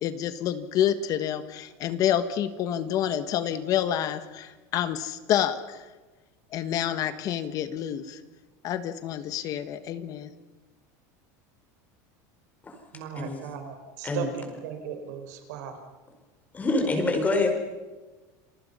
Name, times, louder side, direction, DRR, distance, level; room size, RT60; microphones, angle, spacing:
voice 1, 0.0-5.8 6.5-8.2 8.6-10.3, left 10 dB, 40° left, 11 dB, 1.5 m, -28 dB
voice 2, 12.9-15.8, right 7 dB, 80° right, 6 dB, 4.9 m, -37 dB
voice 3, 16.5-17.5, left 2 dB, 15° left, 4 dB, 4.5 m, -25 dB
29.0 x 23.0 x 5.7 m, 1.2 s
supercardioid pair, 150°, 9 cm